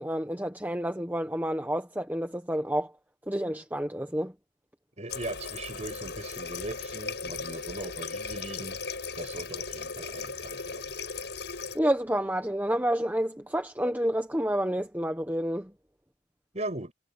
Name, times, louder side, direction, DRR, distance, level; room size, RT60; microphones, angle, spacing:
voice 1, 0.0-2.9 3.3-4.3 11.7-15.7, equal, 10° right, 1.3 m, -29 dB
voice 2, 5.0-8.8 9.1-10.8 16.5-16.9, right 2 dB, 35° right, 6.5 m, -39 dB
Water tap faucet, 5.1-11.8, left 4 dB, 65° left, 7.1 m, -37 dB
head